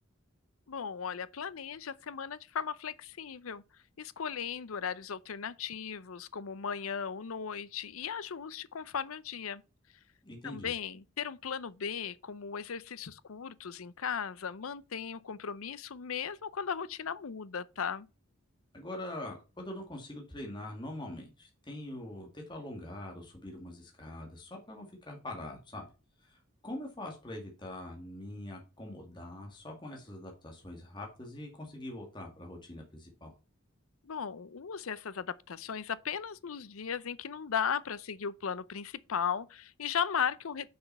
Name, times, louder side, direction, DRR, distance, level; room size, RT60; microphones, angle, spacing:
voice 1, 0.7-3.6 4.0-9.6 10.4-18.1 34.0-40.7, left 7 dB, 85° left, 0.6 m, -36 dB
voice 2, 10.2-10.7 18.7-25.9 26.2-33.3, left 1 dB, 20° left, 2.1 m, -43 dB
6.4 x 6.1 x 5.5 m
head